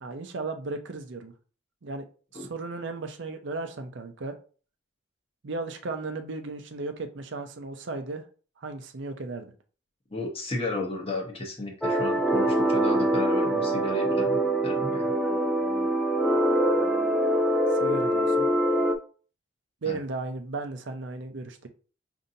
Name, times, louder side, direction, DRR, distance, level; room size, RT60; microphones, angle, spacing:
voice 1, 0.0-1.3 1.8-2.0 2.3-4.3 5.4-8.2 8.6-9.5 14.2-14.4 17.7-18.5 19.8-21.7, right 3 dB, 65° right, 7 dB, 0.5 m, -35 dB
voice 2, 10.1-14.3 14.6-15.1 19.8-20.0, left 2 dB, 30° left, 2 dB, 0.8 m, -33 dB
sound 1, 11.8-19.0, right 1 dB, ahead, 0.4 m, -24 dB
5.2 x 2.7 x 2.6 m, 0.39 s
head